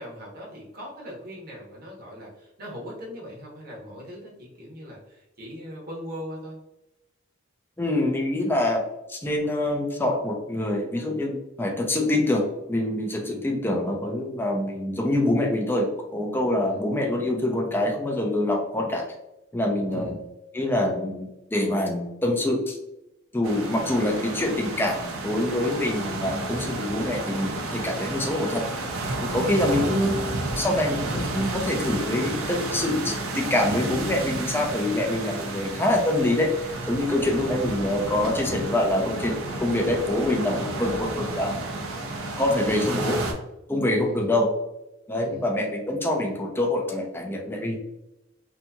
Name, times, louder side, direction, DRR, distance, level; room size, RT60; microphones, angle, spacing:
voice 1, 0.0-6.6 13.2-13.5 16.6-16.8 19.9-20.2 35.4-35.8 37.2-37.5 40.7-41.0 44.0-44.3 45.2-45.5, equal, 45° right, -3 dB, 0.8 m, -40 dB
voice 2, 7.8-8.8 9.1-19.0 19.5-20.2 20.5-22.8 23.3-28.6 29.2-36.5 36.9-41.6 42.4-43.2 43.7-44.5 45.1-47.8, left 1 dB, 10° left, 1 dB, 0.4 m, -25 dB
sound 1, 23.4-43.3, right 2 dB, 90° right, 0.6 m, -31 dB
2.8 x 2.7 x 2.2 m, 0.92 s
head